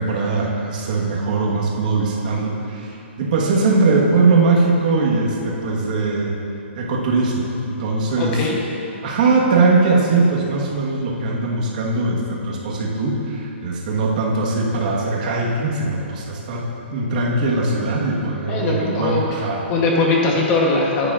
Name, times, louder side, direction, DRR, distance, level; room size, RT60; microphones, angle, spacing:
voice 1, 0.0-6.3 6.7-8.4 9.0-16.6 16.9-19.6, right 3 dB, 40° right, -3 dB, 1.4 m, -20 dB
voice 2, 8.2-8.6 18.5-19.2 19.7-21.1, left 3 dB, 20° left, -2 dB, 1.0 m, -20 dB
11.0 x 9.2 x 2.5 m, 2.8 s
hypercardioid pair, 170°, 7 cm